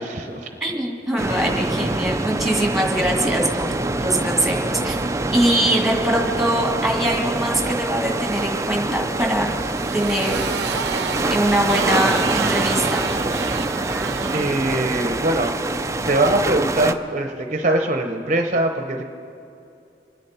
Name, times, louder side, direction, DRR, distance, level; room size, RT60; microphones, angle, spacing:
voice 1, 0.0-0.5 14.3-15.5 16.0-19.0, right 1 dB, 40° right, 4 dB, 0.8 m, -22 dB
voice 2, 0.6-3.8 4.0-5.0 5.3-9.5 9.9-10.4 11.3-13.0, right 1 dB, ahead, 0 dB, 2.1 m, -22 dB
sound 1, 1.2-16.9, right 2 dB, 15° right, 0.5 m, -25 dB
Motorcycle, 9.1-15.6, right 6 dB, 70° right, 0.6 m, -30 dB
25.5 x 10.5 x 4.4 m, 2.7 s
head